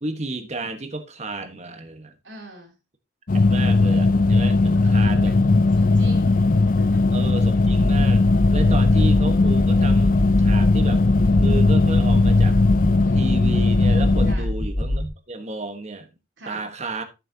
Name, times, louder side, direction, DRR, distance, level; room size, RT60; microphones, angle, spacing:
voice 1, 0.0-2.1 3.5-5.4 7.1-11.0 11.4-12.6 13.1-16.1 16.5-17.0, right 2 dB, 35° right, 1.3 m, -32 dB
voice 2, 2.2-2.7 4.7-5.4 5.7-6.4 6.6-7.0 8.9-9.1 14.2-14.5 16.4-16.6, right 1 dB, 75° right, 3.0 m, -41 dB
sound 1, 3.3-14.3, left 3 dB, 45° left, 0.5 m, -18 dB
sound 2, 7.6-15.1, left 1 dB, 25° left, 0.9 m, -25 dB
12.5 x 6.7 x 2.8 m
head